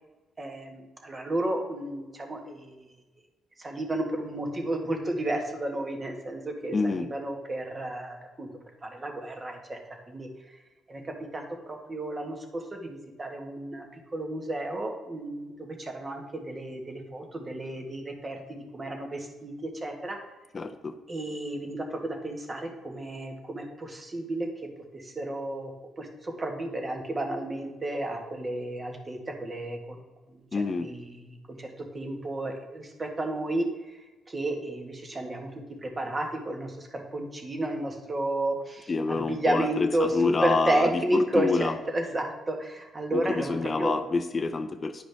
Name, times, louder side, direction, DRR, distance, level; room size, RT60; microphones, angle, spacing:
voice 1, 0.4-2.9 3.6-8.5 8.8-9.8 10.1-10.6 10.9-20.2 21.1-24.5 24.9-30.0 30.5-35.5 35.8-44.0, right 1 dB, 30° right, 3 dB, 1.5 m, -32 dB
voice 2, 6.7-7.1 20.5-20.9 30.5-30.9 38.9-41.7 43.1-45.0, left 3 dB, 35° left, 7 dB, 0.6 m, -27 dB
9.8 x 5.0 x 3.4 m, 1.1 s
cardioid pair, 90°, 0 cm